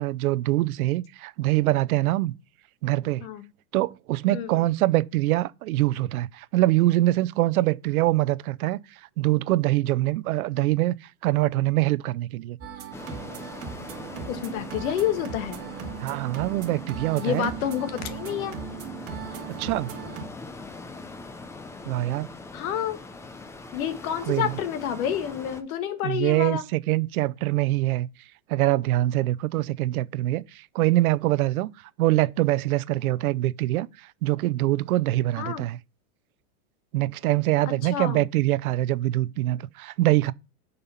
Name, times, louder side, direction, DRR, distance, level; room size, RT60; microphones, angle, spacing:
voice 1, 0.0-2.3 2.8-3.2 3.7-8.8 9.2-10.9 11.2-12.6 16.0-17.5 19.5-19.9 21.9-22.3 24.3-24.5 26.0-28.1 28.5-31.7 32.0-33.9 34.2-35.8 36.9-40.3, right 17 dB, 70° right, 0.7 m, -24 dB
voice 2, 4.3-4.6 14.3-15.6 17.2-18.5 22.5-23.0 23.7-26.6 35.4-35.6 37.9-38.2, left 10 dB, 65° left, 1.6 m, -29 dB
sound 1, 12.6-20.3, right 7 dB, 30° right, 2.5 m, -38 dB
sound 2, 12.9-25.6, left 3 dB, 5° left, 0.5 m, -42 dB
6.9 x 5.4 x 5.6 m
hypercardioid pair, 130°, 45 cm